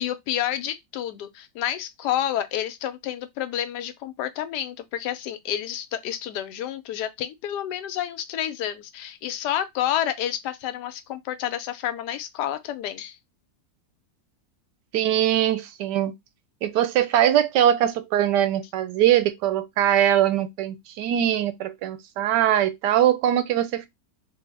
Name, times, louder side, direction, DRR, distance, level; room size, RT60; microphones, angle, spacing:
voice 1, 0.0-13.2, left 11 dB, 75° left, 1.1 m, -29 dB
voice 2, 14.9-16.1 16.6-23.9, right 11 dB, 75° right, 1.1 m, -22 dB
3.7 x 2.1 x 3.3 m
omnidirectional pair, 1.9 m